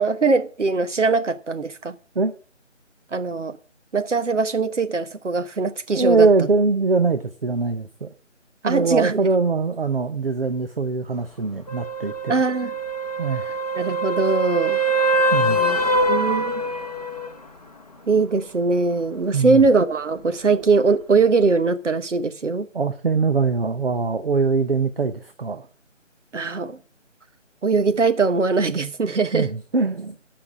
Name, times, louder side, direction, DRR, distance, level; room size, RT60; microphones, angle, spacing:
voice 1, 0.0-1.9 3.1-3.6 3.9-6.3 8.6-9.2 12.3-12.7 13.7-14.8 15.4-15.8 16.0-16.6 18.1-22.7 26.3-26.8 27.6-29.5, right 4 dB, 70° right, 1.2 m, -21 dB
voice 2, 6.0-8.1 8.6-12.4 13.2-13.4 15.3-15.6 19.3-19.7 22.7-25.7 29.3-30.2, right 4 dB, 50° right, 0.7 m, -22 dB
sound 1, 11.7-17.3 21.4-21.5, right 1 dB, 30° left, 0.8 m, -23 dB
14.5 x 5.9 x 6.1 m
figure-of-eight pair, 170°, 37 cm